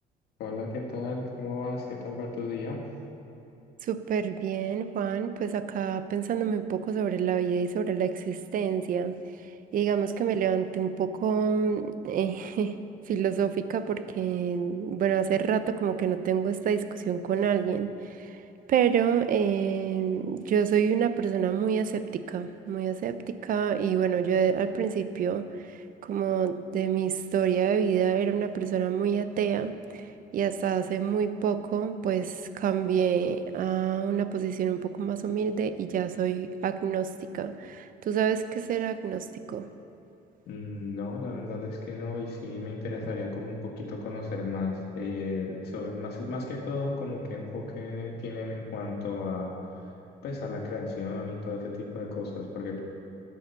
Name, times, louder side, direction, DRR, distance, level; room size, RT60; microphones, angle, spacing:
voice 1, 0.4-2.8 40.5-49.5 50.2-52.8, left 3 dB, 75° left, 0 dB, 1.9 m, -34 dB
voice 2, 3.8-12.7 13.1-18.4 18.7-39.7, right 7 dB, 55° right, 11 dB, 0.7 m, -28 dB
11.5 x 6.4 x 6.8 m, 3.0 s
cardioid pair, 110°, 17 cm